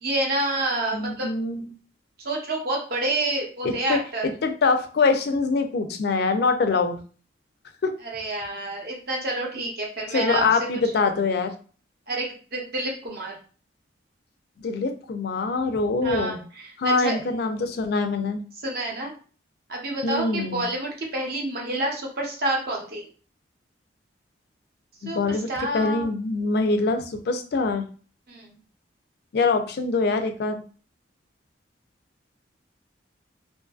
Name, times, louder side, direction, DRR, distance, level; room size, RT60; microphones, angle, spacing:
voice 1, 0.0-1.3 2.2-4.2 8.0-10.6 12.1-13.3 16.0-17.2 18.6-19.1 19.7-23.1 25.0-26.1 28.3-28.6, right 2 dB, 55° right, -1 dB, 0.7 m, -28 dB
voice 2, 0.9-1.6 3.6-4.0 4.4-7.0 7.8-7.9 10.1-11.5 14.6-16.4 16.8-18.4 20.0-20.6 25.0-25.5 25.7-27.9 29.3-30.6, left 4 dB, 55° left, 7 dB, 0.3 m, -24 dB
2.6 x 2.5 x 2.3 m, 0.40 s
head